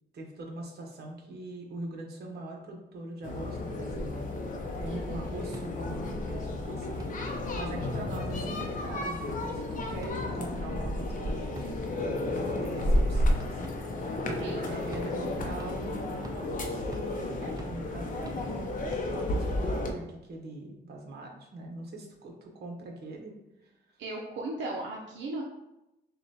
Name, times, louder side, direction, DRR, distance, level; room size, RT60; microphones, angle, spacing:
voice 1, 0.1-4.3 4.8-11.8 12.1-13.6 14.0-23.3 23.6-23.7, right 1 dB, 60° right, 1 dB, 1.0 m, -42 dB
sound 1, 3.2-19.9, left 1 dB, 45° left, 0.6 m, -32 dB
sound 2, 4.4-19.4, right 1 dB, 20° right, 0.4 m, -44 dB
voice 2, 4.9-5.5 7.2-7.4 14.4-14.8 24.0-25.4, right 2 dB, 80° right, -2 dB, 0.6 m, -38 dB
6.7 x 2.3 x 2.8 m, 0.93 s
cardioid pair, 130°, 19 cm